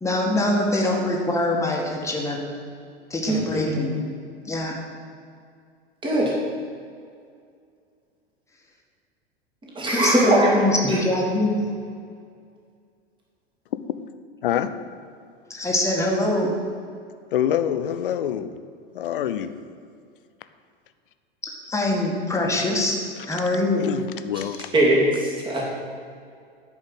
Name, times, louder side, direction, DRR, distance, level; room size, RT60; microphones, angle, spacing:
voice 1, 0.0-2.5 3.1-3.9 4.5-4.8 9.9-11.5 15.5-16.5 21.4-23.0 23.3-23.9, left 1 dB, 10° left, -1 dB, 1.9 m, -24 dB
voice 2, 3.3-3.8 6.0-6.3 9.8-10.5 10.8-11.0 24.7-25.6, right 1 dB, 15° right, -3 dB, 2.4 m, -20 dB
voice 3, 17.3-18.5 18.9-19.5 23.8-24.7, left 10 dB, 60° left, 11 dB, 0.7 m, -25 dB
10.5 x 5.4 x 8.1 m, 2.3 s
figure-of-eight pair, 85°, 30 cm